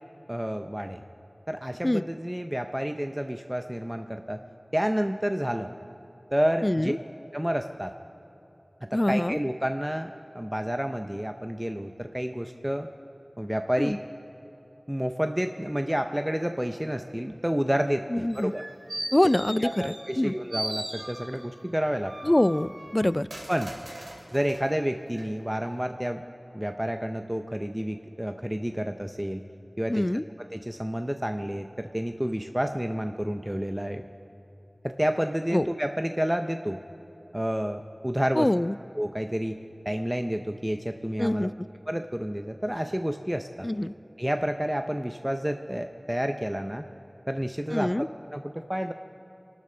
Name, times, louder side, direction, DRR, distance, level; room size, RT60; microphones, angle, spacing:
voice 1, 0.3-1.0 1.5-4.4 4.7-5.7 6.3-6.9 7.3-7.9 8.8-10.1 10.3-12.9 13.4-14.0 14.9-18.6 19.6-22.1 23.5-23.7 24.3-26.2 26.5-29.4 29.8-30.1 30.5-34.0 34.8-36.8 37.3-38.5 39.0-39.6 39.9-41.5 41.9-43.7 44.2-46.8 47.3-48.9, equal, 10° right, 6 dB, 0.6 m, -29 dB
voice 2, 6.6-7.0 8.9-9.4 13.8-14.0 18.1-18.5 19.1-20.3 22.2-23.3 29.9-30.2 35.5-35.7 38.4-38.8 41.2-41.5 43.6-43.9 47.7-48.1, left 1 dB, 30° left, 16 dB, 0.3 m, -24 dB
sound 1, 18.3-20.2 20.5-21.5 22.0-24.7 25.1-25.2, right 1 dB, 75° right, 2.4 m, -38 dB
27.0 x 12.5 x 3.9 m, 2.9 s
wide cardioid pair, 50°, 0 cm